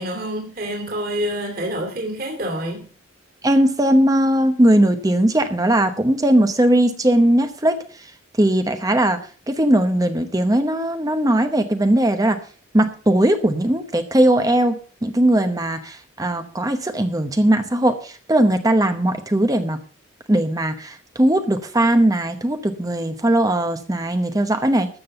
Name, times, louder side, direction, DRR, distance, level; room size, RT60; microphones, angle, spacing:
voice 1, 0.0-2.9, equal, 45° right, 2 dB, 2.8 m, -27 dB
voice 2, 3.4-8.1 8.4-9.2 9.5-12.4 12.7-19.8 20.3-24.9, right 1 dB, 15° right, 8 dB, 0.8 m, -19 dB
13.0 x 7.5 x 6.6 m, 0.41 s
head